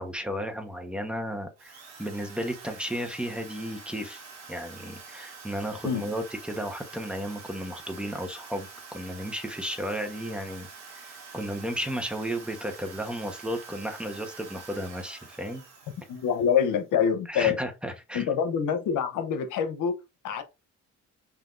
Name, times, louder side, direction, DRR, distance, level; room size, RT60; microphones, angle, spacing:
voice 1, 0.0-1.7 2.0-15.6 17.3-18.2, equal, 5° right, 1.1 m, -34 dB
Drill, 1.6-16.8, right 5 dB, 65° right, 1.4 m, -46 dB
voice 2, 16.1-17.6 18.1-20.4, left 7 dB, 85° left, 0.9 m, -26 dB
5.8 x 2.8 x 2.6 m
cardioid pair, 90°, 30 cm